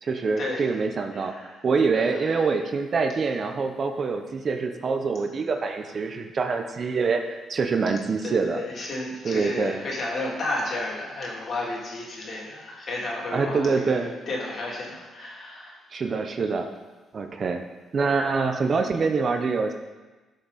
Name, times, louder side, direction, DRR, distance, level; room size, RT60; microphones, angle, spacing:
voice 1, 0.0-7.2 7.5-8.6 9.2-9.8 13.3-14.1 15.9-16.7 17.1-17.6 17.9-19.7, right 4 dB, 45° right, 6 dB, 0.9 m, -25 dB
voice 2, 1.1-1.5 1.9-2.4 8.2-15.8 16.1-16.2, left 2 dB, 50° left, -3 dB, 3.2 m, -32 dB
12.5 x 6.4 x 4.2 m, 1.2 s
cardioid pair, 90°, 0 cm